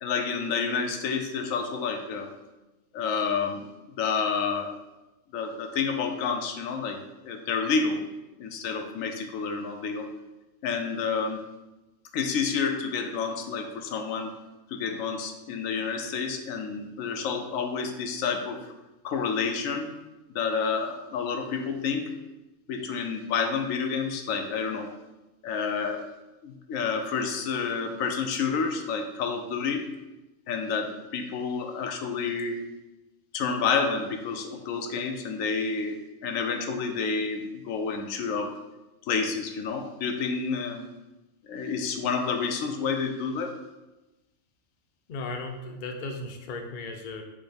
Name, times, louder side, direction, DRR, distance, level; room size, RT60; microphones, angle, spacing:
voice 1, 0.0-2.3 2.9-4.7 5.3-8.0 8.4-10.1 10.6-11.4 12.1-14.3 14.7-18.7 19.0-19.9 20.3-22.1 22.7-24.9 25.4-26.0 26.4-29.9 30.5-32.6 33.3-36.0 36.2-38.5 39.1-40.8 41.5-43.5, left 5 dB, 90° left, 5 dB, 1.0 m, -29 dB
voice 2, 45.1-47.2, left 3 dB, 55° left, 4 dB, 0.6 m, -36 dB
5.3 x 2.1 x 4.9 m, 1.0 s
omnidirectional pair, 1.3 m